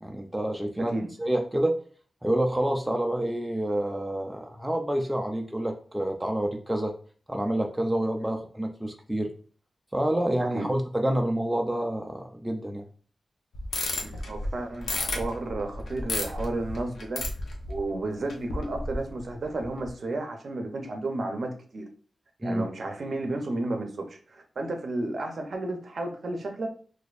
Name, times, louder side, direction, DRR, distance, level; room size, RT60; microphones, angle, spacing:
voice 1, 0.0-1.7 2.2-6.9 7.3-9.3 9.9-12.8 22.4-22.7, right 1 dB, 5° right, 0.3 m, -28 dB
voice 2, 0.8-1.1 10.5-10.7 14.0-17.2 17.7-21.8 22.4-26.7, right 2 dB, 50° right, 0.6 m, -32 dB
sound 1, 13.5-18.0 18.3-19.3 19.6-19.9, left 2 dB, 85° left, 0.8 m, -32 dB
4.1 x 2.6 x 2.4 m
wide cardioid pair, 180°, 0 cm